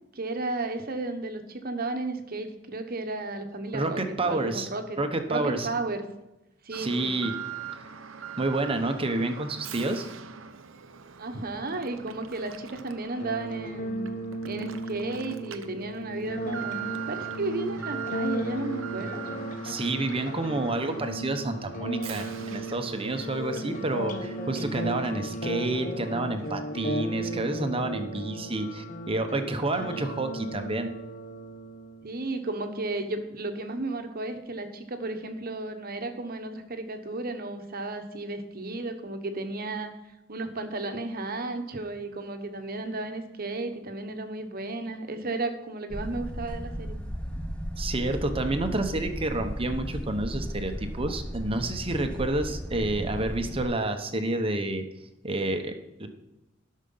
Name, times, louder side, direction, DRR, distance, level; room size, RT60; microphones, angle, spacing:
voice 1, 0.1-5.0 5.3-6.0 6.6-7.2 11.2-14.1 14.4-19.3 32.0-47.0, right 2 dB, 50° right, 6 dB, 1.2 m, -34 dB
voice 2, 3.7-4.7 5.0-5.7 6.7-7.3 8.4-10.1 19.6-30.9 47.8-54.8 55.2-55.7 56.0-56.1, right 2 dB, 30° right, 6 dB, 1.0 m, -29 dB
Alarm, 6.7-25.4 25.7-25.8 26.4-26.5, right 9 dB, 90° right, 0.8 m, -42 dB
sound 1, 13.2-32.2, right 1 dB, 40° left, 1.0 m, -35 dB
sound 2, 45.9-53.6, equal, 5° left, 0.8 m, -35 dB
12.0 x 6.5 x 5.6 m, 0.96 s
head